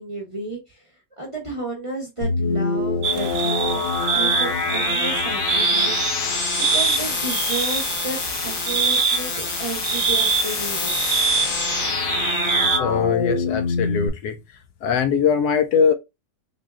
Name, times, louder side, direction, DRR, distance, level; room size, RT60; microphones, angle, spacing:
voice 1, 0.0-11.2, right 2 dB, 25° right, 0.8 m, -32 dB
sound 1, 2.2-14.1, left 4 dB, 50° left, 0.6 m, -25 dB
sound 2, 3.0-12.8, right 6 dB, 70° right, 0.7 m, -24 dB
voice 2, 12.8-14.4 14.8-15.9, left 6 dB, 75° left, 1.0 m, -21 dB
3.9 x 2.2 x 3.5 m
omnidirectional pair, 1.8 m